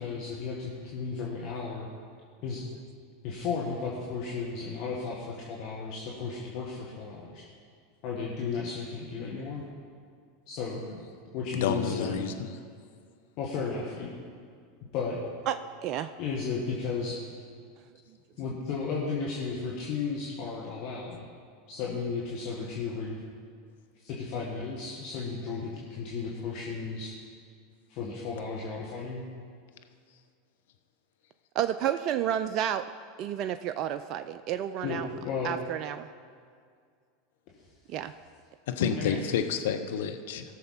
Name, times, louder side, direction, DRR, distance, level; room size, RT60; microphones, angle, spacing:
voice 1, 0.0-1.9 2.4-2.6 3.2-7.4 8.0-9.6 10.5-10.8 11.3-12.2 13.4-14.1 14.9-15.2 16.2-17.2 18.4-21.2 21.7-23.2 24.1-27.1 27.9-29.3 34.8-35.5 39.0-39.2, left 5 dB, 55° left, -3 dB, 1.7 m, -34 dB
voice 2, 11.5-12.5 38.7-40.4, left 7 dB, 70° left, 7 dB, 0.8 m, -29 dB
voice 3, 31.5-32.8 33.2-35.1 35.4-36.1 37.9-38.1 39.1-39.2, right 10 dB, 50° right, 10 dB, 0.4 m, -30 dB
17.5 x 6.7 x 4.3 m, 2.2 s
hypercardioid pair, 90°, 0 cm